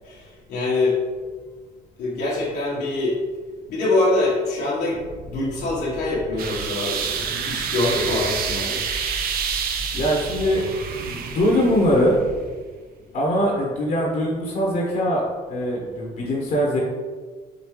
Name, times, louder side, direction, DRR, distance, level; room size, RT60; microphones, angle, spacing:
voice 1, 0.0-1.0 2.0-3.2 3.7-8.8, left 2 dB, 80° left, -7 dB, 1.3 m, -24 dB
sound 1, 4.9-12.5, right 1 dB, 35° right, 0.9 m, -38 dB
sound 2, 6.4-12.0, right 7 dB, 60° right, 0.5 m, -28 dB
voice 2, 9.9-12.1 13.1-15.2 15.5-16.8, equal, 55° left, -3 dB, 1.1 m, -22 dB
5.1 x 2.7 x 3.1 m, 1.5 s
cardioid pair, 110°, 17 cm